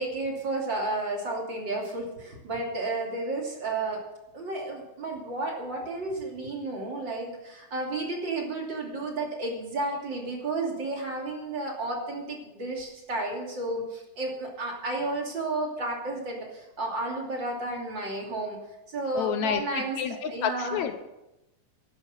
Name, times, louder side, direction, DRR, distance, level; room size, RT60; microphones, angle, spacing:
voice 1, 0.0-4.0 4.3-18.6 18.9-20.8, right 2 dB, 40° right, 0 dB, 3.3 m, -32 dB
voice 2, 19.1-21.0, left 8 dB, 75° left, 9 dB, 2.1 m, -30 dB
14.0 x 11.0 x 6.6 m, 0.94 s
omnidirectional pair, 3.4 m